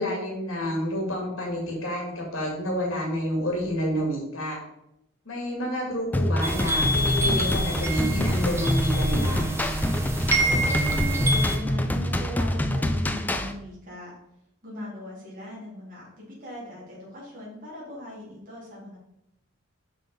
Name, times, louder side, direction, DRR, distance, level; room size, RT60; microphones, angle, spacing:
voice 1, 0.0-4.6 5.3-9.5, equal, 65° left, -1 dB, 2.2 m, -29 dB
sound 1, 6.1-13.5, left 1 dB, 10° left, 0.4 m, -26 dB
sound 2, 6.4-11.6, right 1 dB, 10° right, 0.8 m, -27 dB
voice 2, 10.5-14.1 14.6-19.0, left 1 dB, 40° right, -7 dB, 3.2 m, -38 dB
6.2 x 5.8 x 5.2 m, 0.82 s
head